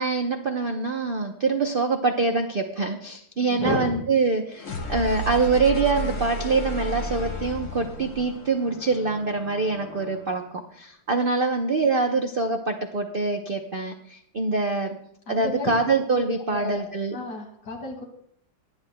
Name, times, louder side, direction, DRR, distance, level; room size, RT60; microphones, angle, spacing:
voice 1, 0.0-15.0 15.3-17.2, right 3 dB, 55° right, 3 dB, 0.6 m, -25 dB
voice 2, 3.4-4.0 15.3-15.7 16.1-16.2 16.5-16.8 17.1-18.0, left 3 dB, 60° left, 1 dB, 2.8 m, -31 dB
sound 1, 4.6-10.4, equal, 45° left, 1.6 m, -33 dB
22.5 x 9.9 x 2.2 m, 0.68 s
omnidirectional pair, 2.1 m